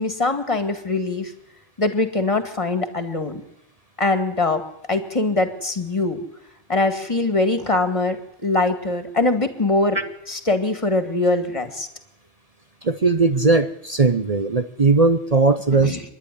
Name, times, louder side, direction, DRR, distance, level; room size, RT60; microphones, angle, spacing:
voice 1, 0.0-1.3 1.8-3.4 4.0-4.6 4.9-6.2 6.7-10.0 10.3-11.9 15.8-16.0, left 2 dB, 25° left, 7 dB, 2.1 m, -22 dB
voice 2, 12.8-16.0, right 3 dB, 35° right, 8 dB, 0.9 m, -18 dB
26.0 x 11.0 x 10.0 m, 0.83 s
omnidirectional pair, 1.2 m